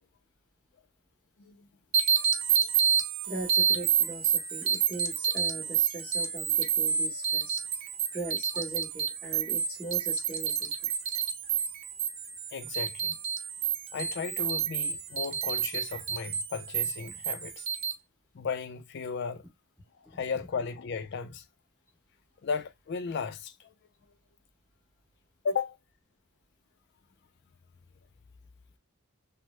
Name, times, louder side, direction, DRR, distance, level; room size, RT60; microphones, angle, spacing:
sound 1, 1.9-17.9, right 8 dB, 65° right, 0.6 m, -29 dB
voice 1, 3.3-7.6 8.1-10.7, right 2 dB, 10° left, 1.0 m, -40 dB
voice 2, 12.5-13.2 13.9-17.7 18.3-19.4 20.1-21.4 22.4-23.7 25.4-25.8, left 5 dB, 50° left, 0.4 m, -35 dB
3.2 x 2.0 x 3.0 m
head